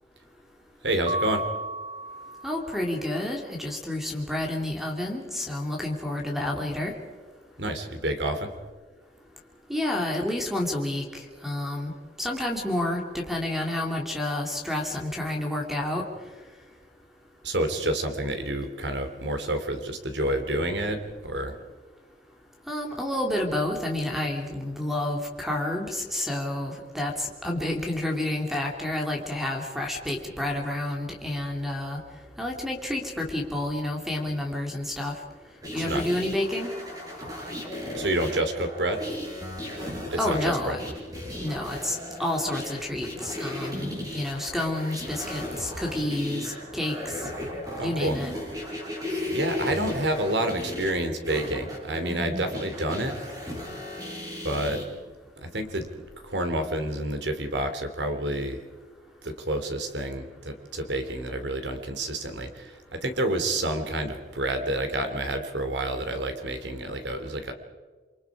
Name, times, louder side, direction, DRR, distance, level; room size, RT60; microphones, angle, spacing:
voice 1, 0.8-1.5 7.6-8.5 17.4-21.6 35.8-36.0 37.9-39.0 40.1-40.8 47.8-48.2 49.3-53.2 54.4-54.8 55.4-58.6 59.2-67.5, right 1 dB, 90° right, 7 dB, 3.0 m, -29 dB
Mallet percussion, 1.1-2.9, right 2 dB, 40° right, 2.2 m, -33 dB
voice 2, 2.4-6.9 9.7-11.0 11.4-11.9 12.2-16.0 22.7-32.0 32.4-35.1 35.7-36.7 40.2-40.8 41.4-46.9 47.8-48.3, left 1 dB, ahead, 1 dB, 3.0 m, -29 dB
sound 1, 35.6-54.8, left 1 dB, 20° right, 7.7 m, -36 dB
29.0 x 24.0 x 4.9 m, 1.3 s
head